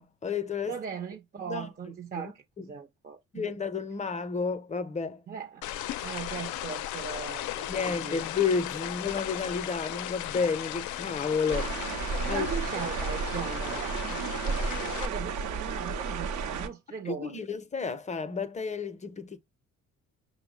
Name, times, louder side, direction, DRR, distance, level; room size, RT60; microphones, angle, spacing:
voice 1, 0.0-0.8 1.4-1.7 2.2-2.7 3.3-5.2 7.7-11.7 12.3-12.5 17.1-19.4, left 5 dB, 25° left, 0.6 m, -31 dB
voice 2, 0.6-3.5 5.3-5.6 6.0-8.2 12.2-17.4, right 6 dB, 30° right, 0.5 m, -39 dB
sound 1, 5.6-15.1, left 12 dB, 75° left, 0.5 m, -36 dB
Water Pipe Outfall, 11.5-16.7, right 5 dB, 75° right, 0.7 m, -32 dB
5.6 x 2.0 x 3.6 m
cardioid pair, 90°, 30 cm